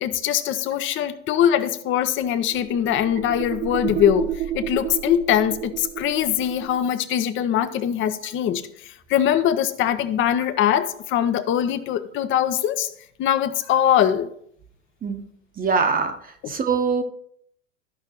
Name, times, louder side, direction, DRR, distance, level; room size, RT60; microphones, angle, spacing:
voice 1, 0.0-12.9 13.2-14.3, left 10 dB, 30° left, 0.7 m, -22 dB
sound 1, 1.9-6.9, right 11 dB, 40° right, 0.5 m, -31 dB
voice 2, 15.6-17.0, right 5 dB, 20° right, 0.9 m, -23 dB
14.0 x 5.6 x 3.0 m
hypercardioid pair, 90°, 41 cm